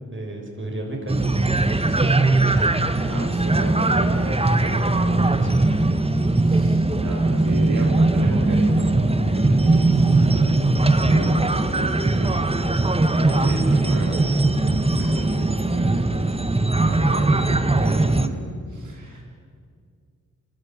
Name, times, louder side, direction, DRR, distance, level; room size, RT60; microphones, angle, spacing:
voice 1, 0.1-2.7 4.8-6.1, right 1 dB, 40° right, 0 dB, 6.4 m, -34 dB
sound 1, 1.1-18.3, right 2 dB, 20° right, 1.5 m, -20 dB
voice 2, 3.1-5.0 6.4-12.5 13.1-16.5 16.8-19.2, right 2 dB, 75° right, -3 dB, 4.4 m, -34 dB
25.0 x 17.5 x 8.8 m, 2.1 s
cardioid pair, 60°, 31 cm